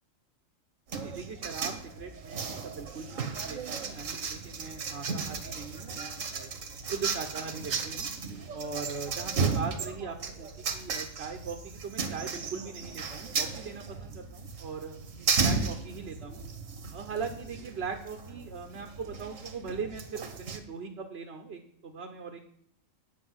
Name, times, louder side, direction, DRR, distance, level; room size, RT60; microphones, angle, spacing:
sound 1, 0.9-20.6, right 5 dB, 80° right, 1.6 m, -35 dB
voice 1, 1.0-6.5 6.9-8.1 8.5-15.0 15.4-16.4 16.9-22.5, right 5 dB, 55° right, 4 dB, 1.1 m, -40 dB
9.7 x 5.2 x 7.9 m, 0.69 s
omnidirectional pair, 1.3 m